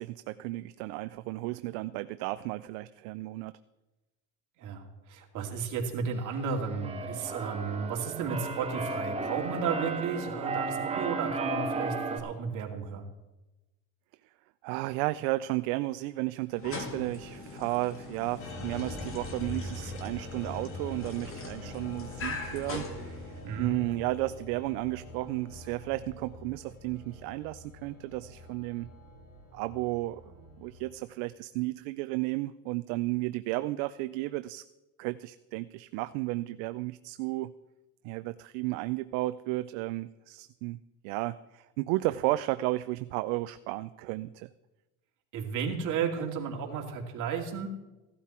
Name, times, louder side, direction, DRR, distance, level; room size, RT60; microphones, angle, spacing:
voice 1, 0.0-3.5 14.6-28.9 29.5-34.6 35.0-37.5 38.0-40.8 41.0-44.5, right 19 dB, 70° right, 12 dB, 0.6 m, -33 dB
voice 2, 4.6-13.1 23.4-23.7 45.3-47.7, right 6 dB, 45° right, 1 dB, 2.6 m, -33 dB
Keyboard (musical), 6.3-12.2, right 4 dB, 15° right, 1.2 m, -34 dB
sound 1, 16.5-23.7, left 3 dB, 30° left, 2.0 m, -42 dB
sound 2, 18.4-31.0, left 1 dB, 85° left, 5.3 m, -44 dB
16.0 x 12.0 x 4.4 m, 1.0 s
cardioid pair, 150°, 41 cm